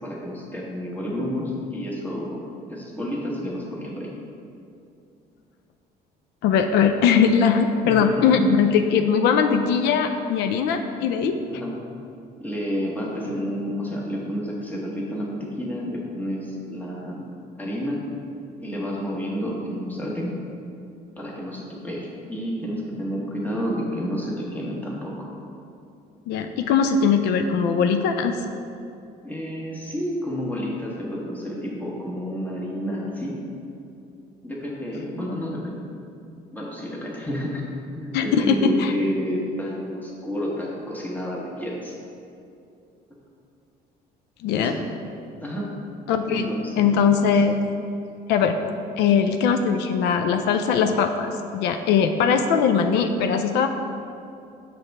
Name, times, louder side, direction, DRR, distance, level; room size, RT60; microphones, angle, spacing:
voice 1, 0.0-2.4 2.7-4.1 7.8-8.2 11.5-11.7 12.4-17.2 17.6-18.0 18.6-20.4 21.1-25.3 29.2-33.4 34.4-35.8 36.5-37.7 37.9-41.9 44.5-44.8 45.4-45.7 46.3-47.1, equal, 10° left, -4 dB, 1.2 m, -30 dB
voice 2, 6.4-11.4 26.3-28.4 38.1-38.9 44.4-44.7 46.1-46.5 46.8-47.6 48.3-48.6 49.0-53.7, left 6 dB, 85° left, 6 dB, 0.4 m, -20 dB
5.8 x 3.4 x 5.3 m, 2.6 s
cardioid pair, 110°, 17 cm